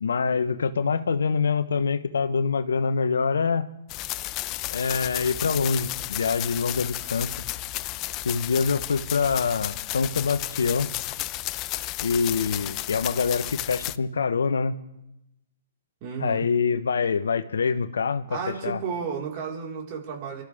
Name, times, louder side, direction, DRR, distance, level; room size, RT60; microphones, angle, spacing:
voice 1, 0.0-3.6 4.7-7.3 8.2-10.9 12.0-14.8 16.2-18.8, left 5 dB, 75° left, 11 dB, 1.0 m, -25 dB
sound 1, 3.9-14.0, left 16 dB, 30° left, 0.5 m, -33 dB
voice 2, 16.0-16.4 18.3-20.4, right 6 dB, 40° right, -2 dB, 4.6 m, -32 dB
30.0 x 13.0 x 3.6 m, 0.90 s
hypercardioid pair, 120°, 0 cm